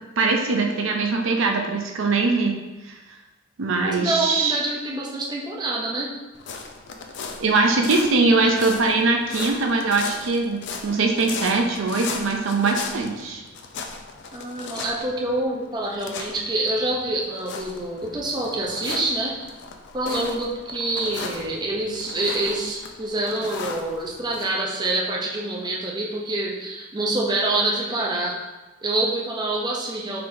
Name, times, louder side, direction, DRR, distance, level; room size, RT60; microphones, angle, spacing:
voice 1, 0.2-2.6 2.9-3.0 3.6-4.6 7.4-13.4, right 3 dB, 75° right, 2 dB, 0.5 m, -21 dB
voice 2, 3.8-6.1 14.3-19.6 19.9-28.4 28.8-30.2, right 2 dB, 20° right, -2 dB, 0.6 m, -26 dB
sound 1, 6.3-24.5, left 4 dB, 60° left, 0.4 m, -37 dB
4.6 x 3.7 x 2.6 m, 1.1 s
head